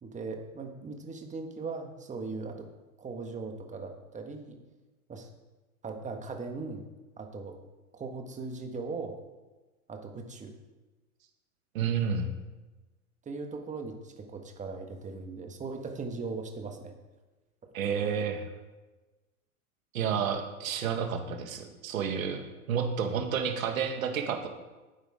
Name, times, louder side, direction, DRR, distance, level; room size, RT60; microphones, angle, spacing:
voice 1, 0.0-2.7 3.0-4.6 5.1-5.3 5.8-6.8 7.2-7.6 7.9-9.2 9.9-10.5 13.3-16.9, right 4 dB, 15° right, 4 dB, 1.7 m, -39 dB
voice 2, 11.7-12.3 17.7-18.4 19.9-24.5, right 7 dB, 65° right, 5 dB, 2.0 m, -30 dB
12.5 x 9.3 x 3.7 m, 1.2 s
hypercardioid pair, 105°, 44 cm